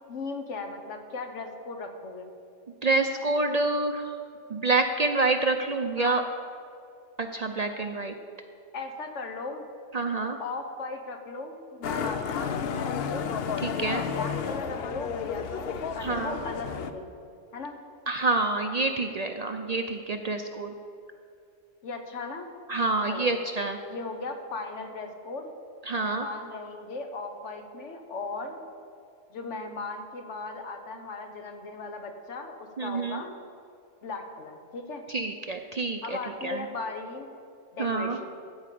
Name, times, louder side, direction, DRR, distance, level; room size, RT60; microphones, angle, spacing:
voice 1, 0.0-2.3 6.0-6.2 8.7-9.7 10.4-13.3 13.8-17.1 17.5-17.8 21.8-22.5 23.1-23.3 23.9-25.5 26.0-28.6 29.3-33.3 34.0-35.0 36.0-37.3 37.7-38.3, left 3 dB, 80° left, 6 dB, 1.3 m, -37 dB
voice 2, 2.8-4.2 4.5-6.2 7.2-8.1 9.9-10.4 13.6-14.0 16.0-16.4 18.1-20.7 22.7-23.8 25.9-26.3 32.8-33.2 35.1-36.2 36.4-36.6 37.8-38.2, right 3 dB, 45° right, 5 dB, 0.5 m, -27 dB
Motorcycle, 11.8-16.9, left 7 dB, 60° left, 0.8 m, -32 dB
14.0 x 4.8 x 8.4 m, 2.5 s
omnidirectional pair, 1.2 m